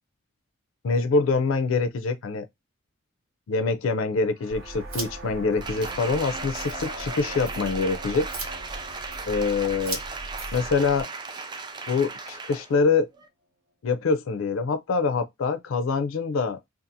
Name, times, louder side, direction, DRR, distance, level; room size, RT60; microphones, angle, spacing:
voice 1, 0.8-2.5 3.5-8.3 9.3-10.0 10.5-11.1 11.9-13.1 13.8-16.6, left 4 dB, 70° left, 0.4 m, -25 dB
sound 1, 4.4-12.2, equal, 60° right, 0.7 m, -45 dB
sound 2, 4.5-11.0, right 2 dB, 90° right, 1.4 m, -39 dB
Applause, 5.6-12.7 13.2-13.3, right 4 dB, 20° right, 0.3 m, -37 dB
2.5 x 2.4 x 2.6 m
head